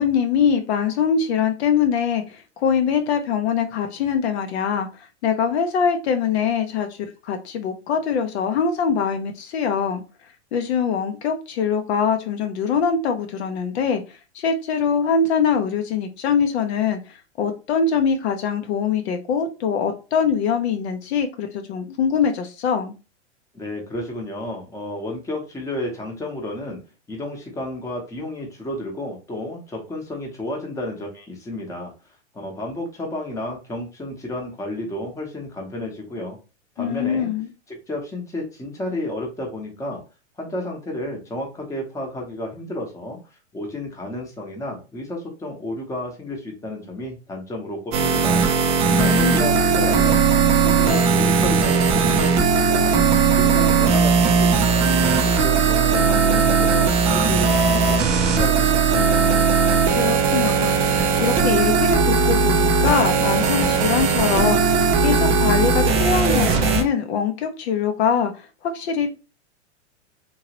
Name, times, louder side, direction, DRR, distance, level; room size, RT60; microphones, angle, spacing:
voice 1, 0.0-4.9 5.2-6.9 7.3-10.0 10.5-14.0 14.3-17.0 17.4-22.9 36.8-37.5 48.9-49.5 60.0-69.1, left 6 dB, 65° left, 6 dB, 0.7 m, -23 dB
voice 2, 23.5-26.8 27.1-36.4 36.8-37.3 37.7-40.0 40.4-43.2 43.5-48.4 49.0-50.2 50.6-53.0 53.3-54.9 55.2-59.4, left 1 dB, 10° left, 0 dB, 0.8 m, -31 dB
sound 1, 47.9-66.8, right 5 dB, 20° right, 0.3 m, -18 dB
3.0 x 2.7 x 2.9 m, 0.31 s
hypercardioid pair, 125°, 36 cm